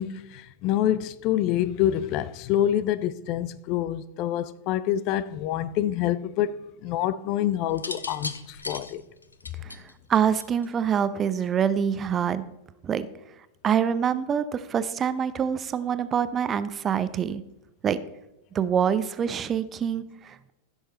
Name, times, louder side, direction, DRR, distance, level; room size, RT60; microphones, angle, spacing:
voice 1, 0.0-9.0, left 11 dB, 40° left, 0.5 m, -26 dB
sound 1, 7.7-10.8 11.9-12.3, left 3 dB, 80° left, 0.7 m, -37 dB
voice 2, 10.1-12.4 12.8-13.1 13.6-17.4 17.8-18.0 18.5-20.5, right 8 dB, 25° right, 0.7 m, -25 dB
15.5 x 6.5 x 4.3 m
figure-of-eight pair, 90°, 0 cm